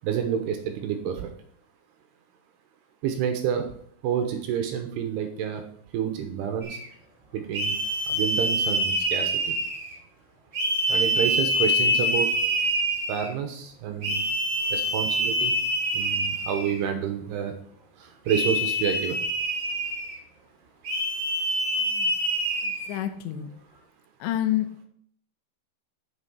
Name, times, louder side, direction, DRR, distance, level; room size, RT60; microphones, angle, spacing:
voice 1, 0.0-1.3 3.0-3.7 4.0-5.6 5.9-6.8 7.3-7.8 8.1-9.6 10.9-12.3 13.1-14.2 14.7-15.5 15.9-17.5 18.0-19.3, right 8 dB, 75° right, 6 dB, 2.7 m, -29 dB
sound 1, 6.6-6.8 7.5-9.9 10.5-13.3 14.0-16.8 18.3-20.2 20.8-22.9, equal, 30° right, 2.9 m, -26 dB
voice 2, 21.8-22.1 22.6-23.5 24.2-24.9, left 12 dB, 80° left, 8 dB, 3.0 m, -29 dB
8.0 x 7.1 x 5.5 m, 0.62 s
omnidirectional pair, 5.3 m